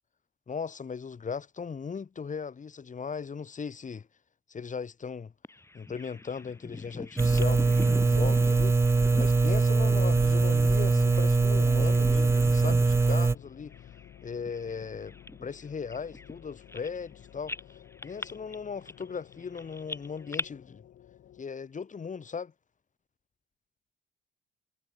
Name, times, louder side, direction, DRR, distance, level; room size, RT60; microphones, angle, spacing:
voice 1, 0.5-4.1 4.5-5.3 5.7-8.8 9.2-13.7 14.2-15.1 15.4-17.6 18.0-20.8 21.4-22.5, left 6 dB, 40° left, 4.4 m, -38 dB
Bird vocalization bird call bird song, 5.4-11.4 11.7-12.6 12.9-13.1 13.7-17.1 17.5-20.4, left 2 dB, 15° left, 5.0 m, -42 dB
sound 1, 7.2-13.3, right 3 dB, 15° right, 0.3 m, -22 dB
sound 2, 9.4-21.4, left 11 dB, 70° left, 2.4 m, -48 dB
cardioid pair, 90°, 20 cm